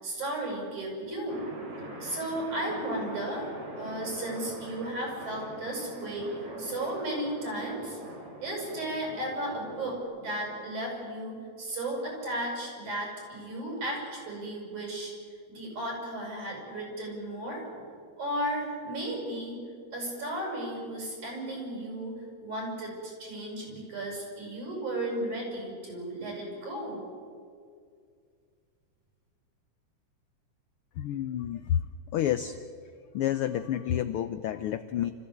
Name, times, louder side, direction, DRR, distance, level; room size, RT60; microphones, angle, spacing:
voice 1, 0.0-1.4 2.0-6.3 6.6-8.0 8.4-15.1 15.5-17.8 18.2-19.6 19.9-27.0, right 1 dB, 75° right, -1 dB, 9.0 m, -34 dB
sound 1, 1.3-10.0, right 1 dB, 50° right, 5.0 m, -43 dB
voice 2, 31.0-31.9 32.1-32.6 33.1-35.1, left 10 dB, 85° left, 10 dB, 1.2 m, -29 dB
29.5 x 15.5 x 8.6 m, 2.2 s
omnidirectional pair, 3.4 m